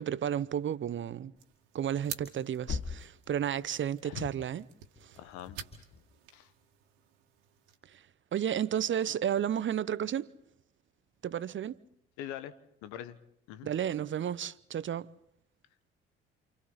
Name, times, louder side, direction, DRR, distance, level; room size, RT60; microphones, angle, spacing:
voice 1, 0.0-1.3 1.7-4.6 5.0-5.1 7.9-8.0 8.3-10.3 11.2-11.8 13.6-15.1, right 9 dB, 40° right, 0.9 m, -32 dB
sound 1, 1.4-7.8, right 10 dB, 75° right, 2.1 m, -49 dB
sound 2, 2.3-4.1 5.0-6.2, left 6 dB, 45° left, 1.5 m, -42 dB
voice 2, 4.0-4.4 5.2-5.6 6.3-6.5 12.2-12.5 12.8-13.2 13.5-13.7, left 11 dB, 70° left, 1.3 m, -42 dB
28.5 x 28.5 x 4.1 m
hypercardioid pair, 50°, 30 cm